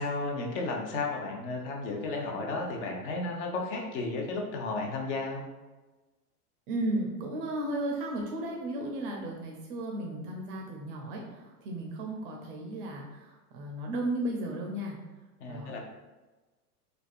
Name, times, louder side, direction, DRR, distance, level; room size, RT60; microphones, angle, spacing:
voice 1, 0.0-5.4 15.4-15.8, left 3 dB, 50° left, 1 dB, 0.7 m, -33 dB
voice 2, 6.7-15.0 15.5-15.8, right 1 dB, 35° right, 0 dB, 0.4 m, -34 dB
3.4 x 2.3 x 2.4 m, 1.2 s
hypercardioid pair, 100°, 47 cm